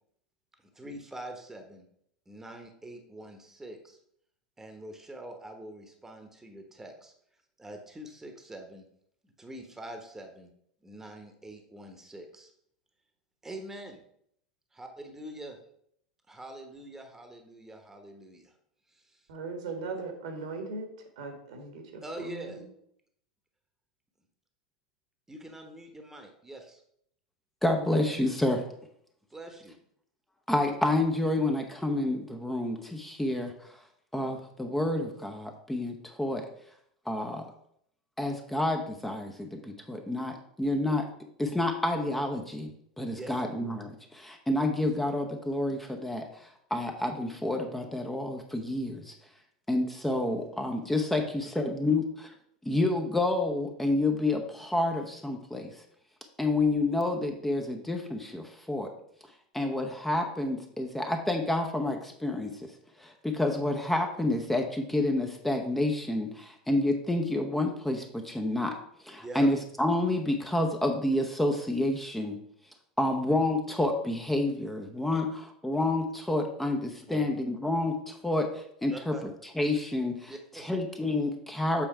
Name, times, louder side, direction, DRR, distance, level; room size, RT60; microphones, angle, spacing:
voice 1, 0.6-1.9 2.3-4.0 4.6-7.1 7.6-8.8 9.2-10.5 10.8-12.5 13.4-14.0 14.7-15.6 16.3-18.5 18.9-19.2 22.0-22.6 25.3-26.8 29.3-29.8 43.1-43.4 51.2-51.7 69.2-69.5 75.1-75.2 77.1-77.3 78.8-79.2 80.3-80.7, right 1 dB, 10° right, 1.2 m, -44 dB
voice 2, 19.3-20.9 21.2-22.6, right 3 dB, 65° right, 1.6 m, -38 dB
voice 3, 27.6-28.6 30.5-33.8 34.1-36.4 37.1-37.5 38.2-41.1 41.4-42.7 43.0-49.1 49.7-52.3 52.6-55.8 56.4-58.9 59.5-62.7 63.0-68.8 69.0-72.4 73.0-75.3 75.6-79.1 79.6-81.9, left 2 dB, 5° left, 0.9 m, -29 dB
7.6 x 4.4 x 4.4 m
figure-of-eight pair, 85°, 4 cm